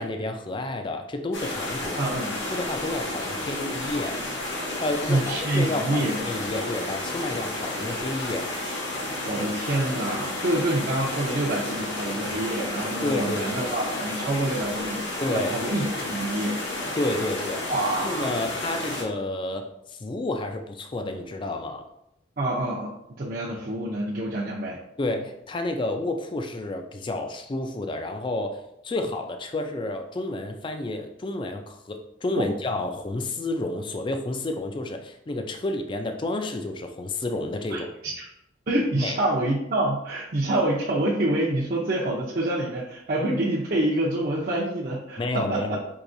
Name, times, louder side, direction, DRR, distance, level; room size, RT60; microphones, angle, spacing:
voice 1, 0.0-2.0 2.5-4.2 4.8-8.5 13.0-13.7 15.2-15.5 17.0-17.7 18.0-21.9 25.0-37.9 39.0-39.2 45.2-45.8, left 2 dB, 25° left, 6 dB, 0.4 m, -30 dB
sound 1, 1.3-19.0, left 1 dB, 80° left, 1.0 m, -31 dB
voice 2, 2.0-2.3 5.0-6.2 9.3-16.6 17.7-18.4 22.4-24.8 32.4-32.5 37.7-37.8 38.7-45.8, right 1 dB, 50° right, -6 dB, 0.6 m, -27 dB
4.7 x 2.8 x 2.6 m, 0.79 s
head